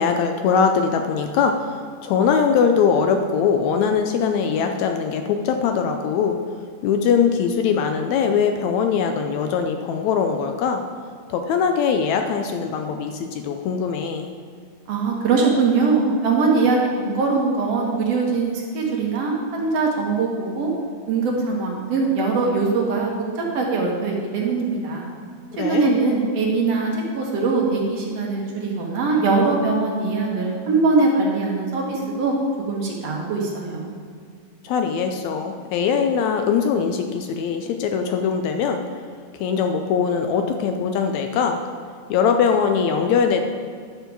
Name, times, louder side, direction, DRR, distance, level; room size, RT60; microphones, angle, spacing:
voice 1, 0.0-6.4 6.8-10.8 11.3-14.3 25.5-25.9 34.6-38.8 39.3-41.6 42.1-43.4, left 6 dB, 80° left, 5 dB, 1.8 m, -21 dB
voice 2, 14.9-20.7 21.1-23.1 23.4-25.1 25.6-32.3 32.7-33.9, right 4 dB, 60° right, -1 dB, 2.1 m, -22 dB
11.0 x 6.8 x 4.7 m, 2.2 s
omnidirectional pair, 3.5 m